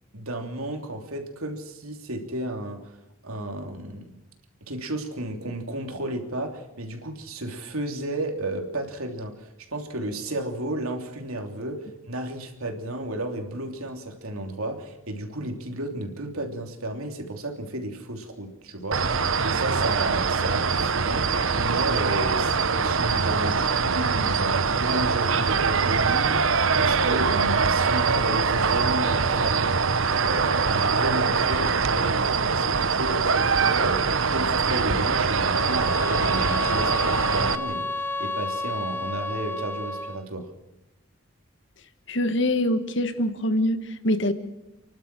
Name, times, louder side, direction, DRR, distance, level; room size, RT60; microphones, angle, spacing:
voice 1, 0.1-3.0 3.2-4.1 4.7-29.8 30.2-40.5, right 1 dB, 90° right, 4 dB, 3.1 m, -33 dB
sound 1, 18.9-37.5, right 5 dB, 70° right, 1.0 m, -23 dB
sound 2, 35.5-40.3, left 3 dB, 10° left, 0.9 m, -31 dB
voice 2, 42.1-44.3, left 1 dB, 55° left, 10 dB, 1.5 m, -24 dB
29.5 x 12.0 x 7.6 m, 0.95 s
head